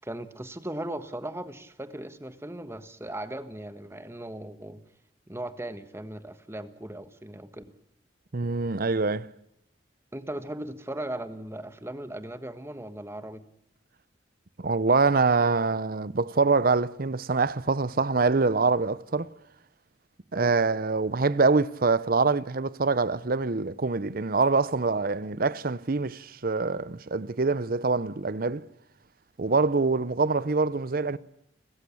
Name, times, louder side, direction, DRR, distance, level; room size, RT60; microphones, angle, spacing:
voice 1, 0.0-4.8 5.3-7.6 10.1-13.4 20.3-20.6 29.5-29.6, right 1 dB, 15° right, 1.5 m, -38 dB
voice 2, 8.3-9.3 14.6-19.3 20.3-28.6 29.4-31.2, right 4 dB, 55° right, 0.8 m, -25 dB
30.0 x 14.5 x 8.5 m
head